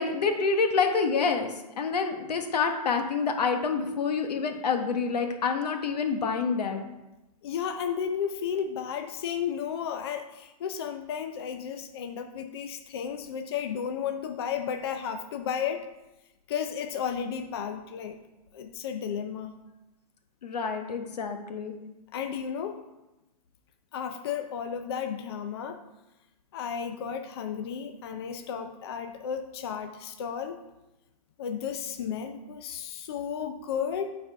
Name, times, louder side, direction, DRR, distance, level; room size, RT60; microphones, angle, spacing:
voice 1, 0.0-1.5 1.8-6.8 20.4-21.7, left 5 dB, 90° left, 5 dB, 1.2 m, -27 dB
voice 2, 7.4-15.8 16.5-18.2 18.5-19.5 22.1-22.8 23.9-25.8 26.5-30.6 31.4-34.1, left 7 dB, 40° left, 6 dB, 0.4 m, -33 dB
8.9 x 4.2 x 4.5 m, 0.98 s
hypercardioid pair, 175°, 20 cm